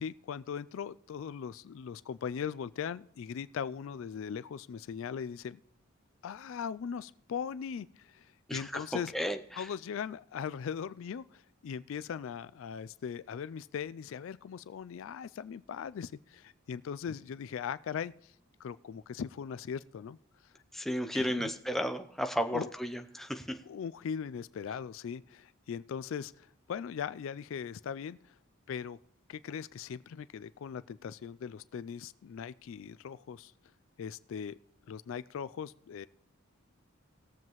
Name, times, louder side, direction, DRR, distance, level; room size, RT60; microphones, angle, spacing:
voice 1, 0.0-5.6 6.2-9.3 9.6-18.3 18.6-20.2 21.1-21.5 22.5-22.7 23.7-28.3 28.7-29.0 29.3-33.5 34.0-34.5 34.9-36.1, left 7 dB, 65° left, 16 dB, 0.3 m, -39 dB
voice 2, 8.5-9.7 20.7-23.6, equal, ahead, 6 dB, 0.6 m, -34 dB
19.5 x 7.4 x 3.1 m, 0.71 s
head